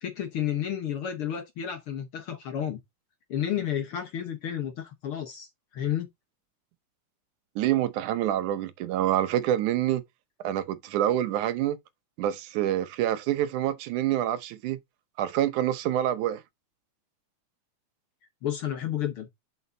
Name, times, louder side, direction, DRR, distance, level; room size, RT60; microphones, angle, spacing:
voice 1, 0.0-2.8 3.3-5.5 5.7-6.1 18.4-19.3, left 10 dB, 60° left, 1.6 m, -31 dB
voice 2, 7.6-10.0 10.4-11.8 12.2-14.8 15.2-16.4, right 12 dB, 80° right, 2.3 m, -26 dB
7.3 x 6.8 x 2.7 m
omnidirectional pair, 3.5 m